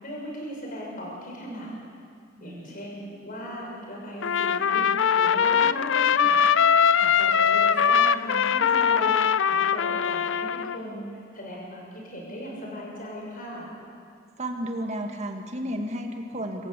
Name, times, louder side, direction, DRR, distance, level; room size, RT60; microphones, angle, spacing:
voice 1, 0.0-1.7 2.4-4.9 5.1-6.4 7.2-11.1 11.3-13.7, equal, 45° left, -2 dB, 6.5 m, -38 dB
voice 2, 2.4-2.7 7.0-7.2 14.4-16.7, equal, 35° right, 4 dB, 2.0 m, -33 dB
Trumpet, 4.2-10.8, left 7 dB, 65° left, 0.5 m, -21 dB
25.0 x 14.5 x 8.5 m, 2.3 s
head